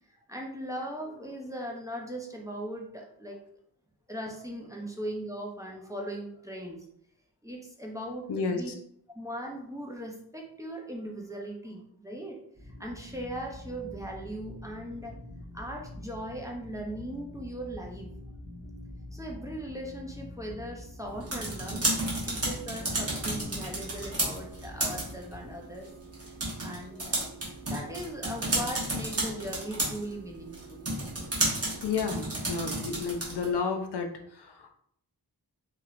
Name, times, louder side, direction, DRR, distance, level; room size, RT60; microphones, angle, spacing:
voice 1, 0.1-3.4 4.1-6.8 7.4-8.7 9.1-15.2 15.5-18.1 19.1-25.9 26.6-27.3 27.6-30.9, right 1 dB, 10° right, 0 dB, 0.5 m, -39 dB
voice 2, 8.3-8.6 31.8-34.7, left 5 dB, 75° left, 5 dB, 0.5 m, -31 dB
sound 1, 12.5-25.5, left 1 dB, 15° left, 1.2 m, -45 dB
sound 2, 21.1-33.6, right 1 dB, 35° right, 1.1 m, -33 dB
3.1 x 2.8 x 2.5 m, 0.67 s
wide cardioid pair, 85°, 40 cm